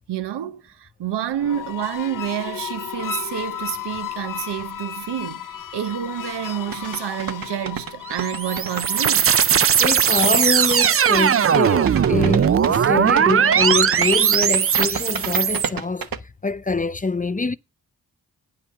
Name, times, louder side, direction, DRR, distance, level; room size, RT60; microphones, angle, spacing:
voice 1, 0.1-9.3, right 10 dB, 90° right, 0.9 m, -29 dB
sound 1, 1.3-10.7, left 10 dB, 55° left, 0.8 m, -34 dB
sound 2, 6.7-16.2, right 7 dB, 60° right, 1.1 m, -30 dB
sound 3, 8.1-15.7, right 8 dB, 35° right, 0.4 m, -19 dB
voice 2, 9.8-16.1 16.4-17.5, left 3 dB, 20° left, 0.6 m, -24 dB
9.2 x 6.0 x 6.5 m
cardioid pair, 50°, 40 cm